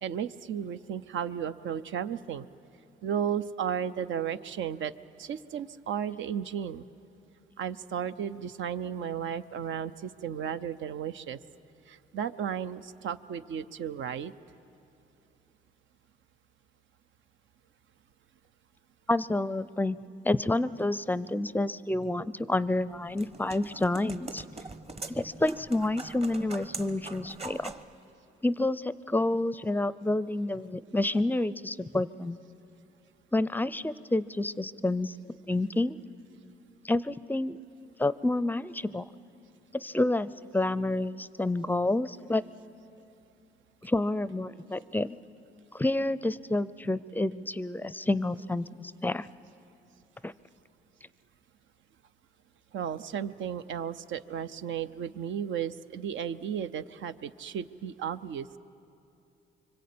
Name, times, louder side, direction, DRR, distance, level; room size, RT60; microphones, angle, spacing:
voice 1, 0.0-2.5 3.0-4.9 5.2-6.8 7.6-11.4 11.9-14.3 52.7-58.5, right 8 dB, 75° right, 12 dB, 0.7 m, -34 dB
voice 2, 19.1-20.0 20.2-24.4 25.1-27.7 28.4-32.4 33.3-35.1 35.5-36.0 36.8-37.6 38.0-39.1 39.7-42.4 43.8-45.1 45.7-49.3 50.2-50.3, left 2 dB, 10° left, 17 dB, 0.5 m, -29 dB
sound 1, 22.6-27.9, right 3 dB, 30° right, 1.2 m, -43 dB
25.5 x 24.5 x 8.6 m, 2.8 s
cardioid pair, 90°, 20 cm